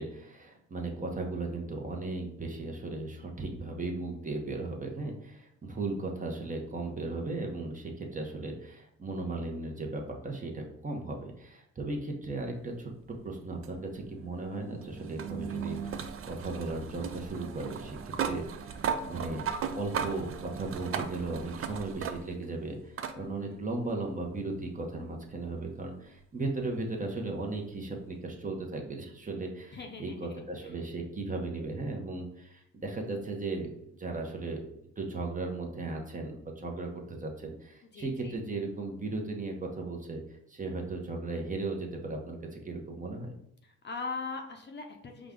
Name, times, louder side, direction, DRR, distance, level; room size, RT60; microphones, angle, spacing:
voice 1, 0.0-18.8 19.0-19.4 19.7-34.7 35.0-43.3, right 2 dB, 25° right, 1 dB, 0.8 m, -36 dB
wasching maschine, 13.6-22.5 23.0-23.2 24.5-24.6 27.5-27.6, right 7 dB, 45° right, 0.4 m, -37 dB
voice 2, 23.0-23.6 29.7-30.8 37.9-38.4 43.6-45.3, left 4 dB, 35° left, 3 dB, 0.7 m, -41 dB
5.0 x 2.3 x 3.7 m, 0.76 s
cardioid pair, 90°, 30 cm